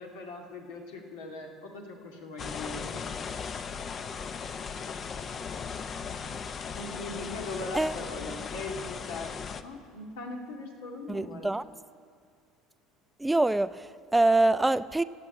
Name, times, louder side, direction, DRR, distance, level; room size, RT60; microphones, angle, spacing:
voice 1, 0.0-2.9 6.7-9.3 9.6-11.5, left 2 dB, 85° left, 2.0 m, -40 dB
sound 1, 2.4-9.6, left 6 dB, 40° left, 0.6 m, -37 dB
voice 2, 11.1-11.6 13.2-15.0, right 2 dB, 10° right, 0.3 m, -25 dB
15.0 x 7.6 x 8.7 m
supercardioid pair, 85°, 0 cm